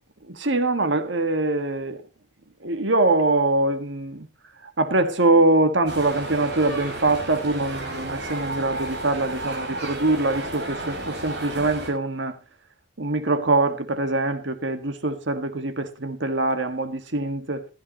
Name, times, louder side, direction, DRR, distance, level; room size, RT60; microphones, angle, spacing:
voice 1, 0.3-2.0 2.6-4.3 4.8-12.3 13.0-17.7, right 2 dB, 75° right, 1.7 m, -23 dB
sound 1, 5.9-11.9, right 2 dB, 55° right, 5.1 m, -32 dB
15.5 x 13.5 x 3.0 m
head